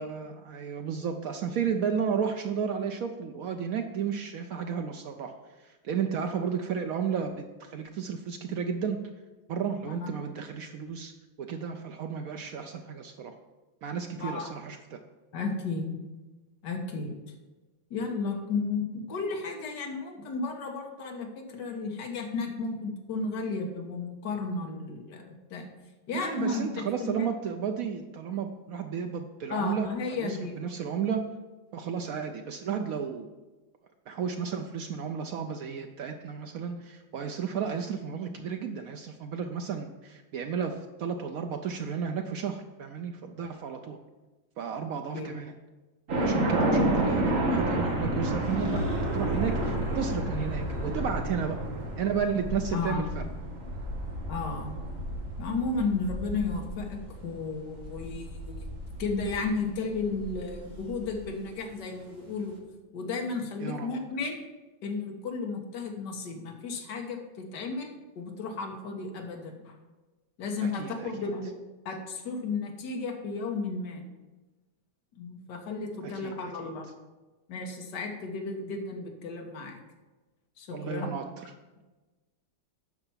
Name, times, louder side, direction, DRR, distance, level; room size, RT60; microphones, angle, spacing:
voice 1, 0.0-9.1 9.5-11.1 11.4-13.4 13.8-15.0 26.1-29.9 30.2-31.2 31.7-33.3 34.1-44.0 44.6-45.5 46.2-51.6 52.0-53.2 63.6-63.9 70.6-71.1 76.0-76.7 80.7-81.3, right 7 dB, 80° right, 5 dB, 0.7 m, -33 dB
voice 2, 14.2-14.5 15.3-16.0 16.6-17.2 17.9-25.7 26.1-26.6 27.0-27.3 29.5-30.7 45.1-45.4 46.7-46.9 52.7-53.0 54.3-54.7 55.4-58.7 59.0-62.5 62.9-64.4 64.8-69.8 70.4-71.5 71.9-74.0 75.2-76.9 77.5-79.8 80.6-81.1, left 4 dB, 60° left, 2 dB, 1.8 m, -33 dB
sound 1, 46.1-61.2, right 1 dB, 45° right, 1.8 m, -31 dB
sound 2, 48.4-51.5, left 2 dB, 30° left, 2.2 m, -36 dB
9.0 x 5.8 x 5.6 m, 1.2 s
omnidirectional pair, 2.2 m